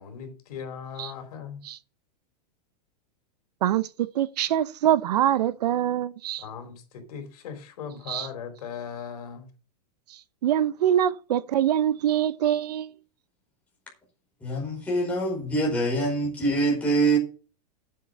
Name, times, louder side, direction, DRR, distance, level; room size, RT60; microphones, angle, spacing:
voice 1, 0.0-1.6 6.4-9.5, left 7 dB, 65° left, 3.9 m, -38 dB
voice 2, 4.1-6.4 8.1-8.3 10.4-12.9, right 11 dB, 70° right, 0.9 m, -24 dB
voice 3, 14.4-17.2, right 2 dB, 5° left, 5.0 m, -24 dB
9.6 x 7.7 x 6.5 m
supercardioid pair, 170°, 21 cm